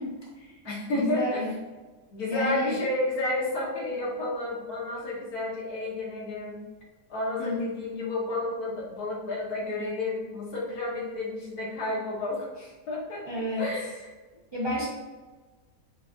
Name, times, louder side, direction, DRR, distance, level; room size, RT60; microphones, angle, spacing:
voice 1, 0.0-0.5 0.9-1.5 2.3-2.8 7.4-7.6 13.3-13.7 14.5-14.9, left 1 dB, 25° right, -5 dB, 0.6 m, -31 dB
voice 2, 0.7-1.4 2.1-6.6 7.1-12.5 12.9-14.1, left 2 dB, 75° left, -4 dB, 1.7 m, -31 dB
5.3 x 3.4 x 2.6 m, 1.3 s
omnidirectional pair, 1.6 m